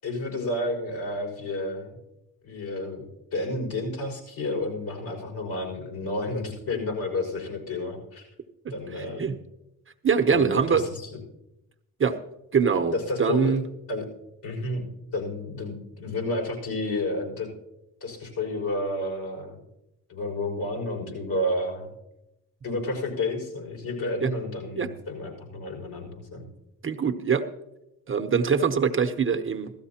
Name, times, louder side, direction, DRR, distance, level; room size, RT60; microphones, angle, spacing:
voice 1, 0.0-2.0 2.4-3.0 3.3-8.3 8.7-9.3 10.3-11.1 12.9-13.5 13.9-14.1 14.4-14.8 15.1-17.5 18.0-19.6 20.1-21.9 22.6-26.5, left 2 dB, 70° left, -1 dB, 5.7 m, -31 dB
voice 2, 9.0-9.4 10.0-10.8 12.0-12.2 12.5-13.6 24.2-24.3 24.8-24.9 26.8-27.4 28.1-29.7, right 6 dB, 30° right, 6 dB, 0.9 m, -23 dB
16.0 x 13.5 x 2.9 m, 0.89 s
supercardioid pair, 75°, 41 cm